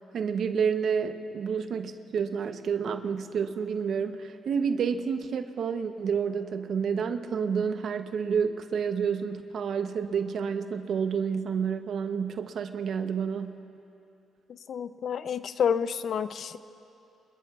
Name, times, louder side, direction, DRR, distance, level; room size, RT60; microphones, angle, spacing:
voice 1, 0.0-13.6, right 6 dB, 60° right, 8 dB, 0.8 m, -29 dB
voice 2, 14.7-16.6, left 7 dB, 60° left, 13 dB, 0.5 m, -29 dB
27.5 x 21.0 x 2.4 m, 2.8 s
cardioid pair, 90°, 0 cm